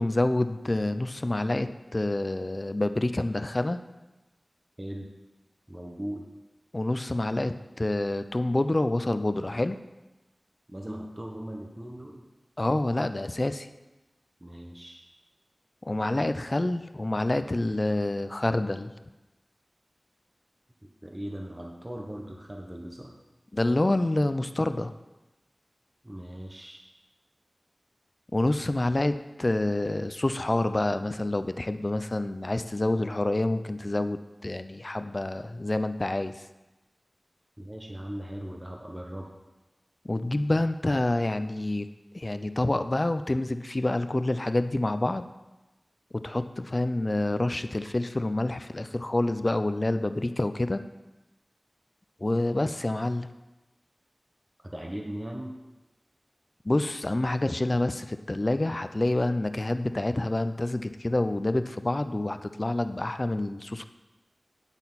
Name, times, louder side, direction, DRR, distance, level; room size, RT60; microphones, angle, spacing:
voice 1, 0.0-3.8 6.7-9.8 12.6-13.7 15.8-18.9 23.5-24.9 28.3-36.3 40.0-41.9 42.1-45.2 46.1-50.8 52.2-53.3 56.6-63.8, left 2 dB, 40° left, 11 dB, 0.5 m, -27 dB
voice 2, 4.8-5.1 5.7-6.2 10.7-12.2 14.4-15.0 20.8-23.1 26.0-26.8 37.6-39.3 54.6-55.5, right 1 dB, 25° right, 0 dB, 1.2 m, -39 dB
8.9 x 8.5 x 4.1 m, 1.1 s
wide cardioid pair, 45°, 0 cm